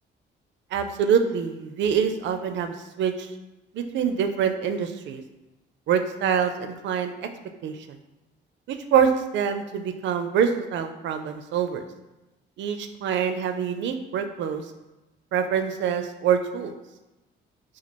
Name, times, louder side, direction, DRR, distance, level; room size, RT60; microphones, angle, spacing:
voice 1, 0.7-3.3 3.7-5.2 5.9-7.3 7.6-7.8 8.7-11.8 12.6-14.6 15.3-16.7, right 7 dB, 65° right, 7 dB, 0.4 m, -25 dB
3.0 x 2.3 x 4.2 m, 1.0 s
cardioid pair, 90°, 20 cm